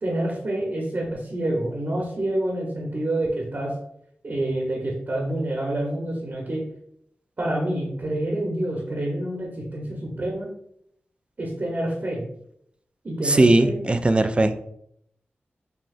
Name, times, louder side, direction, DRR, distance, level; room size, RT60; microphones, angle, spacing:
voice 1, 0.0-3.7 4.2-6.6 7.4-10.5 11.4-12.2 13.0-13.8, right 1 dB, 55° right, -2 dB, 1.0 m, -27 dB
voice 2, 13.2-14.6, right 2 dB, 25° right, 9 dB, 0.4 m, -19 dB
6.1 x 2.3 x 2.6 m, 0.72 s
cardioid pair, 50°, 4 cm